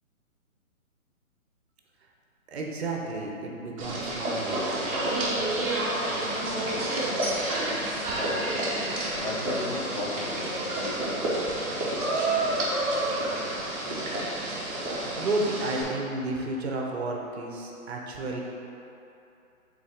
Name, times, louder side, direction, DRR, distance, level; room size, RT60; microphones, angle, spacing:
voice 1, 2.5-4.9 15.1-18.4, right 2 dB, 50° right, 0 dB, 1.0 m, -32 dB
sound 1, 3.8-15.8, right 1 dB, 25° right, 1.1 m, -29 dB
voice 2, 8.2-8.5 9.2-11.3, left 2 dB, 40° left, -1 dB, 0.7 m, -36 dB
7.3 x 4.0 x 3.6 m, 2.8 s
hypercardioid pair, 150°, 42 cm